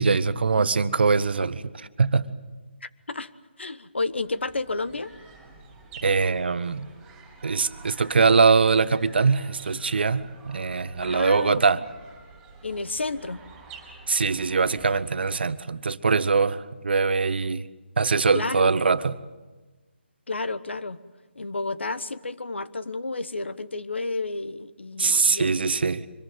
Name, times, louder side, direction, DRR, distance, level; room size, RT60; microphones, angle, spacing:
voice 1, 0.0-1.6 2.0-2.2 6.0-6.9 7.4-11.8 14.1-17.6 18.0-19.1 25.0-26.1, right 4 dB, 60° right, 1.1 m, -22 dB
voice 2, 2.8-3.3 3.6-5.1 11.0-11.9 12.6-13.4 18.3-18.7 20.3-21.0 21.3-25.8, left 3 dB, 75° left, 1.3 m, -31 dB
sound 1, 4.0-15.6, right 4 dB, 10° right, 4.3 m, -49 dB
25.0 x 21.0 x 9.2 m
figure-of-eight pair, 155°, 6 cm